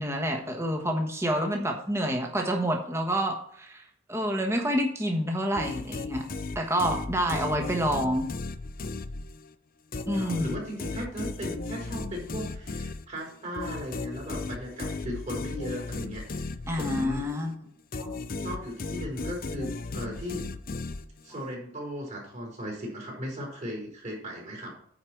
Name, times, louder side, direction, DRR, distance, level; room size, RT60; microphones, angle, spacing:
voice 1, 0.0-3.8 4.1-6.3 6.5-8.3 10.1-10.6 16.7-17.5 18.0-18.1, equal, 15° right, 2 dB, 1.3 m, -28 dB
sound 1, 5.5-9.5 9.9-17.5 17.9-21.4, left 3 dB, 45° left, 0.6 m, -36 dB
voice 2, 10.1-17.2 18.4-20.5 21.2-24.7, equal, 35° right, -2 dB, 3.9 m, -37 dB
9.6 x 4.9 x 5.9 m, 0.65 s
head